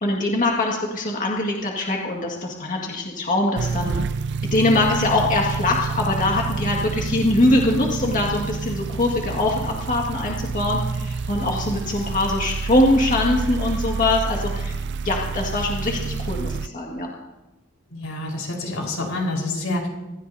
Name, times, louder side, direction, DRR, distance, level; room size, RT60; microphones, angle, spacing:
voice 1, 0.0-3.9 4.5-14.8 15.0-17.1, left 2 dB, 40° left, -1 dB, 1.9 m, -22 dB
sound 1, 3.6-16.7, right 4 dB, 55° right, 0.4 m, -28 dB
voice 2, 11.4-11.8 17.9-19.9, left 2 dB, 85° left, 0 dB, 4.5 m, -28 dB
25.5 x 14.0 x 2.8 m, 1.1 s
head